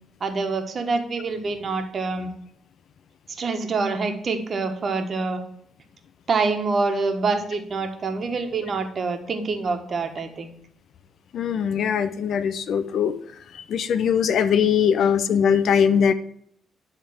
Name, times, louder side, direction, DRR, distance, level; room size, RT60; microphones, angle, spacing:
voice 1, 0.2-2.3 3.4-5.4 6.3-10.5, right 4 dB, 45° right, 6 dB, 1.5 m, -26 dB
voice 2, 11.3-13.1 13.7-16.1, left 7 dB, 65° left, 13 dB, 0.6 m, -21 dB
10.5 x 3.6 x 7.3 m, 0.68 s
cardioid pair, 90°, 0 cm